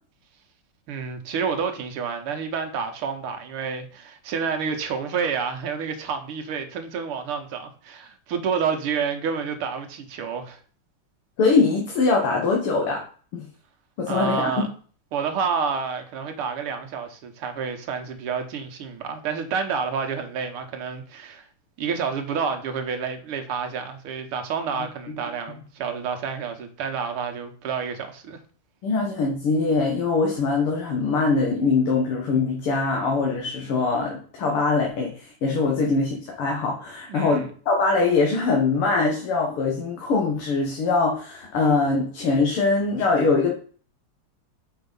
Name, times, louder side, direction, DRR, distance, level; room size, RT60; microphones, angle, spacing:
voice 1, 0.9-10.6 14.1-14.7 15.1-21.5 21.8-28.4 35.7-36.0 37.1-37.5, right 6 dB, 85° right, 2.1 m, -29 dB
voice 2, 11.4-13.0 13.3-13.5 14.0-14.6 25.1-25.2 28.8-43.5, left 4 dB, 90° left, 2.3 m, -22 dB
6.7 x 4.8 x 5.4 m
omnidirectional pair, 2.3 m